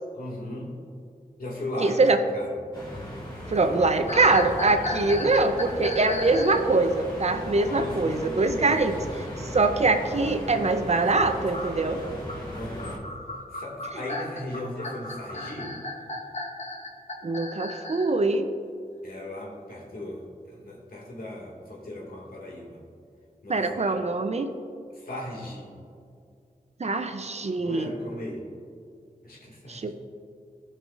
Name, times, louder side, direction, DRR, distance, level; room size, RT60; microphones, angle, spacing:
voice 1, 0.1-0.7 1.4-2.5 5.0-5.1 7.6-8.6 12.5-13.0 13.5-15.7 19.0-22.8 23.4-24.0 25.0-25.7 27.6-28.5 29.2-29.9, left 1 dB, 75° left, -4 dB, 2.0 m, -37 dB
voice 2, 1.8-2.2 3.5-12.0 13.9-14.0 17.2-18.5 23.5-24.5 26.8-27.9 29.7-29.9, right 3 dB, 45° right, 7 dB, 0.6 m, -23 dB
sound 1, 2.7-13.0, equal, 30° left, 1.8 m, -37 dB
sound 2, 4.1-6.7 11.5-18.1, left 1 dB, 50° left, 1.0 m, -35 dB
15.0 x 5.5 x 2.5 m, 2.3 s
wide cardioid pair, 85°, 15 cm